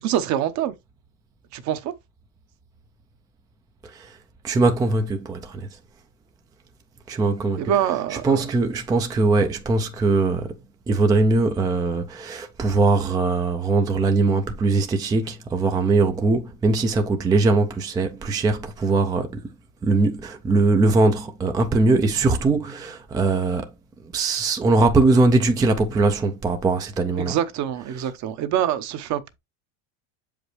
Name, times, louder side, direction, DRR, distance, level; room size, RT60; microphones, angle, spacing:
voice 1, 0.0-0.7 1.5-1.9 7.6-8.3 27.2-29.4, right 10 dB, 45° right, 0.9 m, -25 dB
voice 2, 3.8-4.2 4.4-5.7 7.1-7.7 8.1-10.5 10.9-19.4 19.8-23.7 24.0-27.4, right 3 dB, 10° right, 0.4 m, -21 dB
7.0 x 5.1 x 3.1 m
supercardioid pair, 135°, 41 cm